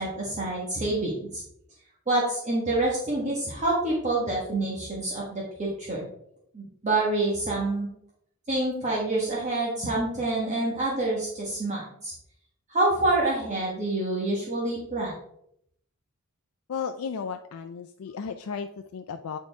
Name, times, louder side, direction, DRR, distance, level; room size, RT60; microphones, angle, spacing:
voice 1, 0.0-1.4 2.1-6.1 6.5-7.9 8.5-12.1 12.7-15.1, right 2 dB, 30° right, -4 dB, 1.4 m, -27 dB
voice 2, 16.7-19.4, left 6 dB, 70° left, 7 dB, 0.4 m, -34 dB
8.9 x 4.3 x 3.5 m, 0.73 s
head